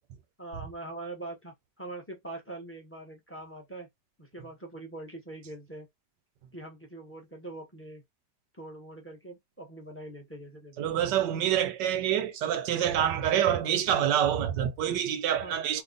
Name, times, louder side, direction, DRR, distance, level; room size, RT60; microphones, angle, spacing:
voice 1, 0.4-3.9 4.2-5.9 6.5-8.0 8.6-10.9 15.4-15.8, right 2 dB, 15° left, 0.4 m, -43 dB
voice 2, 10.8-15.8, right 10 dB, 85° right, 1.3 m, -26 dB
3.3 x 2.1 x 3.8 m
omnidirectional pair, 1.8 m